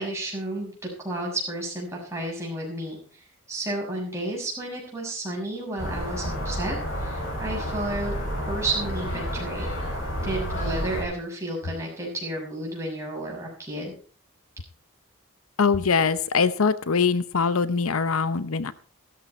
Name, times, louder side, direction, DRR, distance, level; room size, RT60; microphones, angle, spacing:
voice 1, 0.0-8.1 8.5-9.7 10.2-13.9, right 1 dB, 15° right, -2 dB, 6.4 m, -32 dB
sound 1, 5.8-11.0, equal, 60° left, 7.3 m, -30 dB
voice 2, 15.6-18.7, left 5 dB, 75° left, 15 dB, 0.7 m, -23 dB
14.5 x 13.0 x 4.3 m, 0.40 s
head